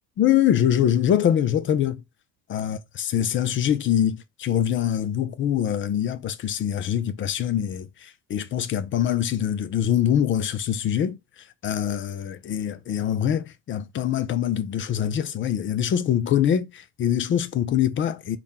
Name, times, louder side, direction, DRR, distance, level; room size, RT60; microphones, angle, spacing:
voice 1, 0.2-2.0 2.5-2.8 3.1-18.4, left 10 dB, 25° left, 0.4 m, -24 dB
3.5 x 2.2 x 4.2 m
hypercardioid pair, 70°, 49 cm